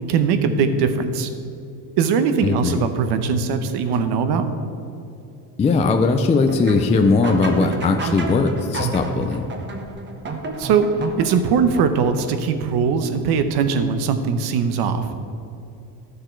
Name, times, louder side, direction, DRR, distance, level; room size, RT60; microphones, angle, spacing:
voice 1, 0.1-1.3 2.0-4.5 10.6-10.9 11.2-15.1, right 6 dB, 65° right, 9 dB, 0.9 m, -20 dB
voice 2, 2.4-2.8 5.6-9.5, left 4 dB, 15° left, 5 dB, 0.3 m, -19 dB
sound 1, 6.5-12.4, right 3 dB, 25° right, 0.9 m, -30 dB
12.0 x 6.7 x 4.5 m, 2.6 s
cardioid pair, 140°, 42 cm